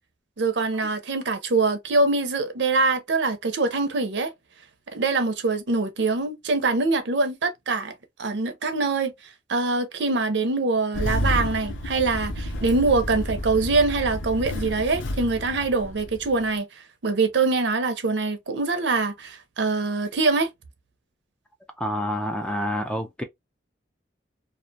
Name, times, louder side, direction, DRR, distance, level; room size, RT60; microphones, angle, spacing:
voice 1, 0.4-4.3 4.9-7.9 8.2-9.1 9.5-16.7 17.0-20.5, right 3 dB, 70° right, 0.6 m, -24 dB
Engine starting, 10.9-16.5, left 1 dB, 90° left, 0.5 m, -30 dB
voice 2, 21.8-23.2, equal, 5° left, 0.3 m, -28 dB
2.4 x 2.1 x 2.6 m
head